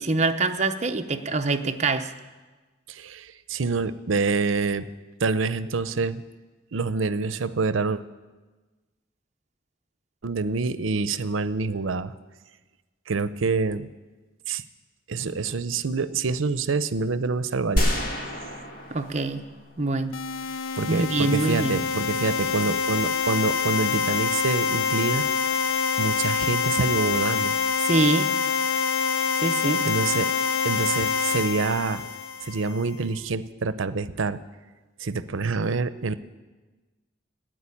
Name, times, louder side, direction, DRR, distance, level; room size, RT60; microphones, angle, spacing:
voice 1, 0.0-2.1 18.9-19.5 19.8-20.2 20.9-21.8 27.8-28.3 29.4-29.8, right 3 dB, 35° right, 6 dB, 0.7 m, -24 dB
voice 2, 2.9-4.9 5.2-6.2 6.7-8.0 10.2-12.1 13.1-13.9 14.5-14.6 15.1-17.9 20.8-25.3 26.0-27.6 29.8-30.3 30.6-32.0 32.4-34.4 35.0-36.1, right 4 dB, 80° right, 15 dB, 0.6 m, -26 dB
sound 1, 17.8-20.0, equal, 45° left, 2.2 m, -28 dB
sound 2, 20.1-32.8, left 6 dB, 90° left, 0.6 m, -26 dB
13.0 x 9.2 x 9.8 m, 1.3 s
head